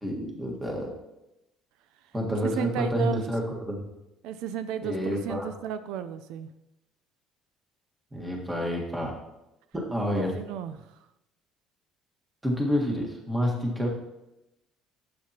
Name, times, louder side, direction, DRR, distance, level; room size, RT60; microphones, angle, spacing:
voice 1, 0.0-0.9 2.1-3.4 3.7-3.8 4.8-5.5 8.1-9.1 9.7-10.3 12.4-13.9, equal, 5° right, -1 dB, 1.6 m, -28 dB
voice 2, 2.4-3.2 4.2-6.5 10.2-11.0, right 9 dB, 80° right, 11 dB, 0.5 m, -34 dB
12.0 x 7.7 x 2.9 m, 0.91 s
cardioid pair, 170°, 0 cm